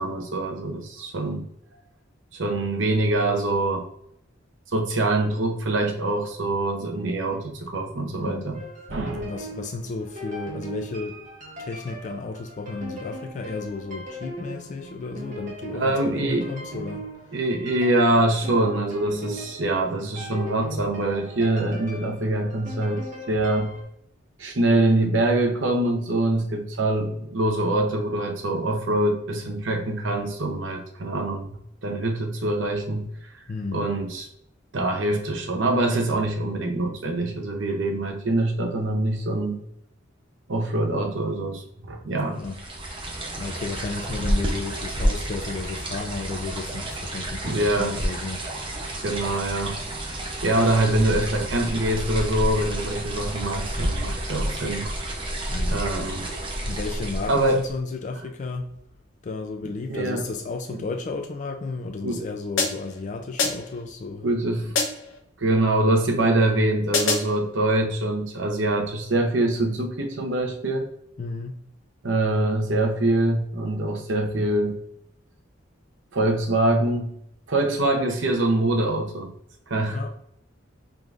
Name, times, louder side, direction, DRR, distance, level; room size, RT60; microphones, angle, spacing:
voice 1, 0.0-1.5 2.3-3.8 4.7-8.6 8.9-9.3 15.7-16.5 17.3-23.7 24.4-31.6 31.8-33.1 33.7-34.3 34.7-39.6 40.5-42.4 47.4-48.0 49.0-49.8 50.4-54.9 55.7-56.3 57.3-57.6 59.9-60.2 62.0-62.2 64.2-64.7 65.4-70.9 72.0-74.8 76.1-77.1 77.5-79.3 79.7-80.1, right 2 dB, 75° right, 0.8 m, -24 dB
voice 2, 8.1-8.5 9.2-11.2 11.6-17.4 33.5-33.8 42.2-42.6 43.4-48.5 55.5-55.8 56.6-58.7 59.2-64.3 64.6-64.7 71.2-71.6 79.9-80.1, left 3 dB, 40° left, 0.4 m, -33 dB
sound 1, 8.5-23.8, equal, 40° right, 1.5 m, -39 dB
sound 2, 42.4-57.8, right 1 dB, 25° right, 0.7 m, -30 dB
sound 3, 62.6-63.0 63.4-63.8 64.8-65.2 66.9-67.4, left 4 dB, 80° left, 0.8 m, -25 dB
4.6 x 3.7 x 2.5 m
head